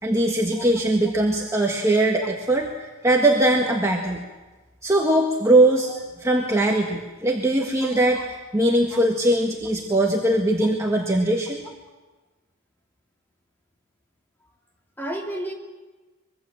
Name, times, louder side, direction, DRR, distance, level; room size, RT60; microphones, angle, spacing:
voice 1, 0.0-2.7 3.0-4.2 4.8-11.6, right 1 dB, 15° right, 0 dB, 1.6 m, -21 dB
voice 2, 7.8-8.2 8.9-9.0 15.0-15.5, right 1 dB, 10° left, 1 dB, 2.9 m, -33 dB
24.0 x 22.5 x 7.4 m, 1.2 s
head